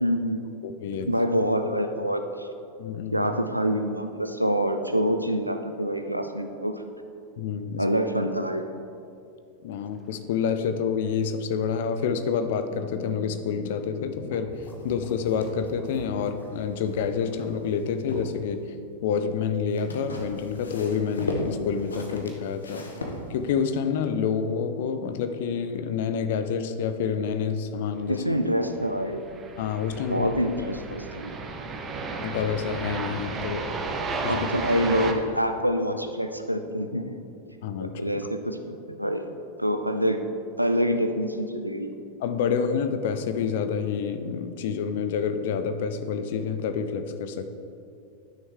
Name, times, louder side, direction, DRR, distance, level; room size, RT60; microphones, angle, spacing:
voice 1, 0.0-0.4 1.1-2.5 3.1-6.8 7.8-8.7 28.1-29.2 30.1-31.3 34.3-37.2 37.8-39.2 39.6-40.2 40.6-41.9, equal, 90° right, 7 dB, 0.5 m, -26 dB
voice 2, 0.6-1.1 2.8-3.3 7.4-7.8 9.6-14.5 14.8-18.6 19.0-22.8 23.3-28.2 29.6-30.3 32.2-33.7 34.2-34.4 37.6-38.2 42.2-47.5, left 6 dB, 55° left, 9 dB, 0.5 m, -28 dB
sound 1, 9.7-10.2 12.5-17.6, left 2 dB, 10° left, 1.1 m, -44 dB
sound 2, 14.6-17.0 17.4-18.3 19.7-23.8, left 1 dB, 75° left, 0.9 m, -36 dB
sound 3, 28.5-35.1, right 3 dB, 25° right, 0.8 m, -33 dB
10.5 x 6.3 x 3.5 m, 2.6 s
figure-of-eight pair, 90°, 0 cm